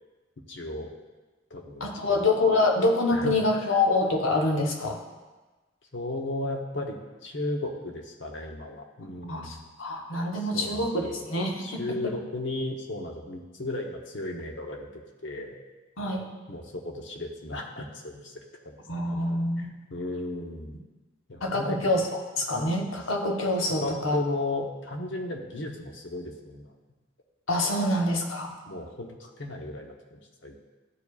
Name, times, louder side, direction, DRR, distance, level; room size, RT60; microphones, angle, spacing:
voice 1, 0.5-0.9 1.5-2.6 3.1-3.3 5.9-9.6 10.4-11.2 11.6-15.6 16.5-18.3 18.6-20.8 21.3-21.8 23.8-26.7 27.8-27.9 28.7-30.6, left 2 dB, 65° left, 2 dB, 0.9 m, -35 dB
voice 2, 1.8-5.0 9.3-12.1 16.0-16.3 18.9-19.7 21.4-24.2 27.5-28.5, left 2 dB, 85° left, 1 dB, 1.1 m, -26 dB
12.5 x 4.8 x 2.4 m, 1.2 s
head